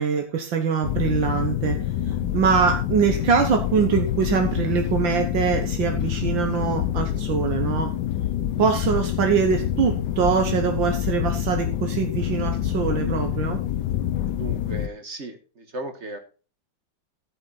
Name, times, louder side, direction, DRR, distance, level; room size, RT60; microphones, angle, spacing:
voice 1, 0.0-1.8 2.3-7.9 8.6-13.6, right 6 dB, 80° right, 4 dB, 1.9 m, -23 dB
sound 1, 0.8-14.9, left 11 dB, 70° left, 1.3 m, -26 dB
voice 2, 14.4-16.2, right 2 dB, 40° right, 6 dB, 1.7 m, -36 dB
14.0 x 7.2 x 4.0 m, 0.35 s
omnidirectional pair, 2.1 m